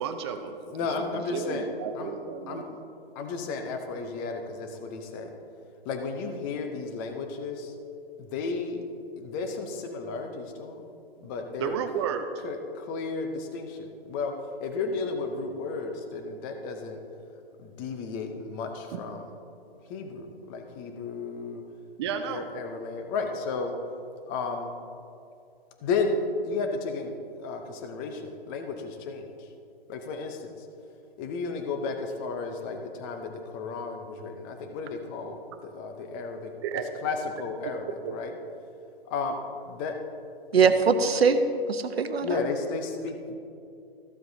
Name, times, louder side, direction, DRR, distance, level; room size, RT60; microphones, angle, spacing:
voice 1, 0.0-0.5 0.9-2.7 11.6-12.3 18.9-19.0 22.0-22.4 36.6-36.9 38.0-38.4, right 7 dB, 25° right, 7 dB, 0.6 m, -32 dB
voice 2, 0.7-1.7 1.9-2.1 2.5-2.6 3.1-5.3 5.9-7.7 8.2-8.8 9.2-10.9 11.2-11.8 12.4-14.3 14.6-17.0 17.6-19.2 19.8-21.6 22.3-23.7 24.3-24.7 25.8-26.2 26.4-29.5 29.9-30.7 31.2-36.5 37.0-38.3 39.1-39.4 39.7-39.9 40.6-40.8 42.2-43.3, left 4 dB, 20° left, 5 dB, 0.7 m, -33 dB
voice 3, 40.5-41.4 41.7-42.4, right 5 dB, 85° right, 8 dB, 0.9 m, -22 dB
14.0 x 7.6 x 2.7 m, 2.5 s
hypercardioid pair, 145°, 30 cm